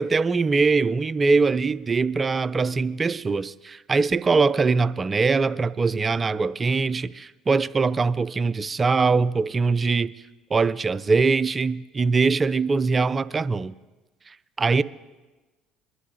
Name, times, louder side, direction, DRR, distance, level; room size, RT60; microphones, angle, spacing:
voice 1, 0.0-10.1 10.5-13.7 14.3-14.8, right 4 dB, 30° right, 0.4 m, -22 dB
23.0 x 11.0 x 2.8 m
hypercardioid pair, 65°, 0 cm